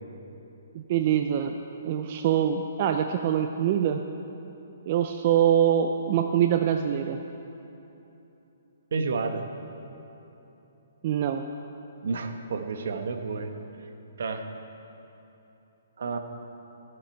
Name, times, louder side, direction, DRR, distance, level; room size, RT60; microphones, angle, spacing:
voice 1, 0.7-1.6 1.8-4.0 4.8-7.2 11.0-11.4, right 9 dB, 35° right, 6 dB, 0.4 m, -24 dB
voice 2, 8.9-9.4 12.0-13.5 14.2-14.5 16.0-16.2, right 4 dB, 70° right, 6 dB, 1.1 m, -30 dB
17.5 x 7.8 x 4.6 m, 3.0 s
hypercardioid pair, 165°, 0 cm